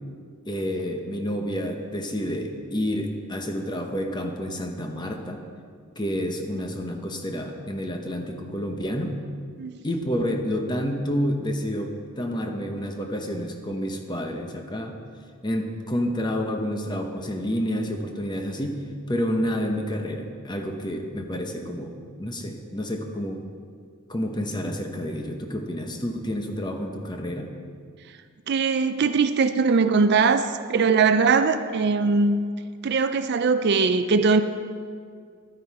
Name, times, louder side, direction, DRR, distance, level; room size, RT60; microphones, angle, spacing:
voice 1, 0.5-5.4 6.0-9.2 9.8-15.0 15.4-18.8 19.1-23.4 24.1-27.5, equal, 20° left, 3 dB, 1.0 m, -29 dB
voice 2, 28.5-32.5 32.8-34.4, right 4 dB, 50° right, 10 dB, 0.4 m, -21 dB
12.0 x 9.8 x 4.8 m, 2.1 s
head